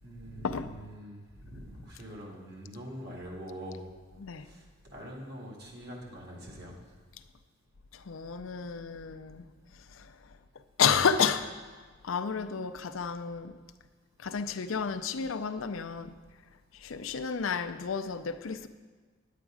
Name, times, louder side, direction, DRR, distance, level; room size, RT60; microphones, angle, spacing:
voice 1, 0.0-3.8 4.3-6.7, equal, 55° right, 2.0 m, -44 dB
voice 2, 4.2-4.5 7.9-9.5 9.7-10.4 10.8-13.6 14.2-16.1 16.7-18.7, left 6 dB, 80° left, 0.5 m, -31 dB
10.0 x 8.3 x 4.9 m
head